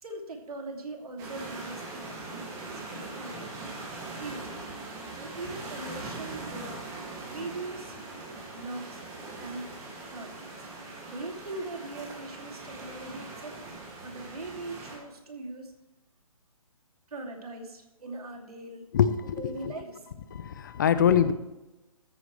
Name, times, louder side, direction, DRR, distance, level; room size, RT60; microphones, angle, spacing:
voice 1, 0.0-3.6 4.1-4.7 5.2-6.8 7.3-7.9 8.5-9.0 9.4-9.6 10.1-10.5 11.1-13.5 14.0-15.7 17.1-18.9 19.2-20.4, right 2 dB, 80° right, 2 dB, 2.8 m, -41 dB
sound 1, 1.2-15.0, right 2 dB, 15° right, 2.3 m, -41 dB
voice 2, 18.9-19.4 19.6-19.7 20.3-21.3, left 8 dB, 35° left, 13 dB, 0.5 m, -23 dB
13.5 x 9.2 x 3.3 m, 1.0 s
hypercardioid pair, 160°, 19 cm